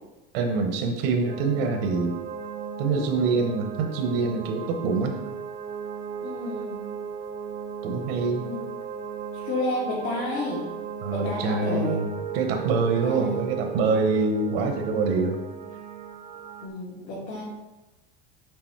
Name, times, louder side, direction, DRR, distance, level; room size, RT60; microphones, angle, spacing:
voice 1, 0.3-2.2 2.8-5.2 7.8-8.5 11.0-12.1 12.3-15.4, right 4 dB, 80° right, 4 dB, 1.0 m, -25 dB
sound 1, 1.2-16.7, right 7 dB, 25° right, 0.4 m, -36 dB
voice 2, 6.2-6.8 8.2-8.7 9.3-10.6 11.1-12.0 13.0-13.5 16.6-17.4, left 2 dB, 80° left, -8 dB, 2.2 m, -31 dB
6.8 x 3.6 x 4.6 m, 1.1 s
supercardioid pair, 135°, 30 cm